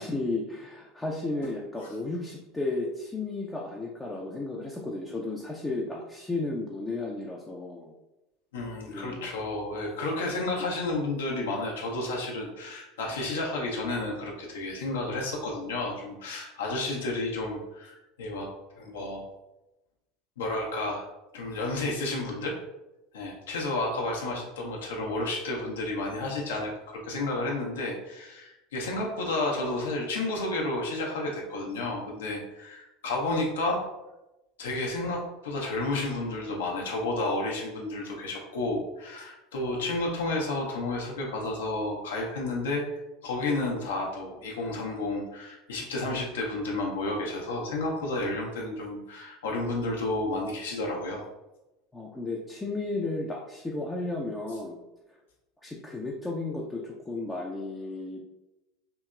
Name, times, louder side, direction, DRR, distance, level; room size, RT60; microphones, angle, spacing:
voice 1, 0.0-7.9 8.9-9.3 51.9-54.8 55.6-58.2, left 2 dB, 10° left, -3 dB, 0.4 m, -33 dB
voice 2, 8.5-18.5 18.8-19.2 20.4-21.1 21.3-22.5 23.1-33.8 34.6-42.8 43.2-51.2, left 2 dB, 65° left, -1 dB, 0.6 m, -31 dB
2.9 x 2.8 x 2.3 m, 0.96 s
figure-of-eight pair, 75°, 0 cm